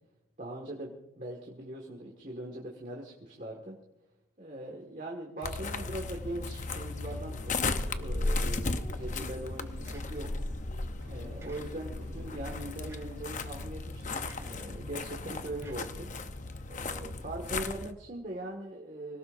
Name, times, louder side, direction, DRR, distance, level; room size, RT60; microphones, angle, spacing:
voice 1, 0.4-3.8 4.4-16.4 16.7-19.2, right 1 dB, 40° right, 0 dB, 1.8 m, -41 dB
sound 1, 5.4-17.9, left 3 dB, 40° left, 0.8 m, -35 dB
sound 2, 7.3-13.2, right 1 dB, 65° right, 2.0 m, -54 dB
sound 3, 9.8-10.5 11.4-12.1 12.9-13.3 14.2-14.6 15.6-16.5, right 2 dB, 15° right, 2.9 m, -56 dB
25.0 x 18.0 x 2.6 m, 0.95 s
head